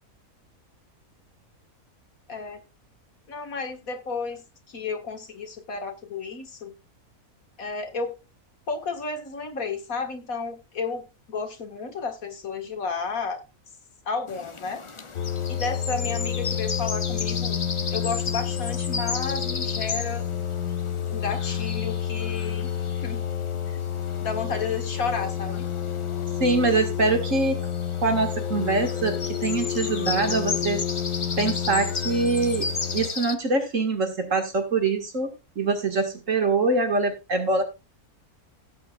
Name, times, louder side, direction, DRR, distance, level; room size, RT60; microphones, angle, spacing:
voice 1, 2.3-2.6 3.3-6.7 7.6-8.2 8.7-13.4 14.1-14.8 15.5-17.6 17.9-20.2 21.1-22.7 23.0-23.2 24.2-25.7, left 4 dB, 70° left, 6 dB, 2.1 m, -32 dB
sound 1, 14.3-33.3, left 4 dB, 30° left, 0.6 m, -35 dB
sound 2, 15.1-33.1, left 9 dB, 85° left, 1.5 m, -29 dB
voice 2, 26.4-27.7 28.0-30.8 31.4-37.6, right 3 dB, 60° right, 5 dB, 2.2 m, -24 dB
16.5 x 8.6 x 2.4 m, 0.25 s
omnidirectional pair, 1.5 m